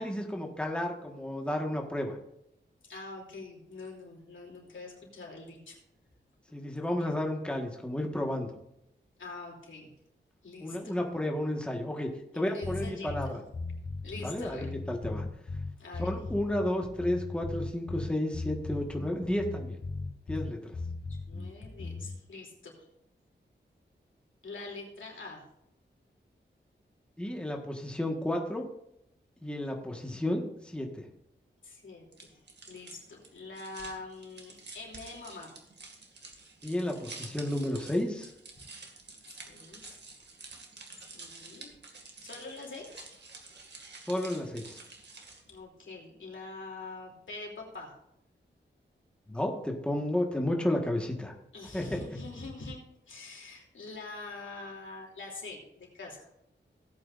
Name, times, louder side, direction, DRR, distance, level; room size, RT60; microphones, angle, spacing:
voice 1, 0.0-2.2 6.5-8.5 10.6-12.1 12.3-13.4 14.2-15.3 16.0-19.8 20.3-20.7 27.2-28.6 29.4-31.1 36.6-38.3 44.0-44.8 49.3-51.3 51.7-52.0, left 1 dB, 5° left, 1 dB, 1.5 m, -32 dB
voice 2, 2.8-5.8 7.0-7.1 9.2-9.9 10.4-11.0 12.3-13.4 14.0-14.7 15.8-16.1 21.1-22.8 24.4-25.4 31.6-32.3 32.7-35.5 39.3-40.0 41.1-41.7 42.2-43.0 45.5-47.9 51.5-52.8 53.1-56.3, left 3 dB, 90° left, -1 dB, 3.0 m, -44 dB
sound 1, 12.6-22.2, left 3 dB, 70° left, 3.8 m, -38 dB
sound 2, 32.1-45.6, right 3 dB, 65° right, 2.1 m, -49 dB
16.5 x 8.8 x 2.6 m, 0.79 s
wide cardioid pair, 130°, 19 cm